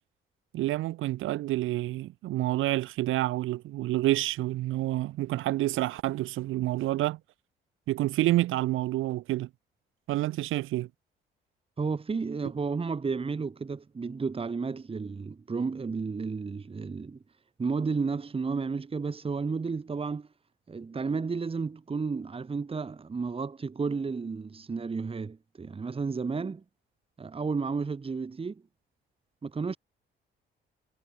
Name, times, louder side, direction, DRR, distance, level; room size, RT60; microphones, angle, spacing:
voice 1, 0.5-7.2 7.9-9.5 10.1-10.9, right 16 dB, 90° right, 3.9 m, -28 dB
voice 2, 11.8-17.2 17.6-20.3 20.7-26.6 27.2-28.6 29.4-29.8, right 4 dB, 30° right, 1.7 m, -32 dB
cardioid pair, 90°, 20 cm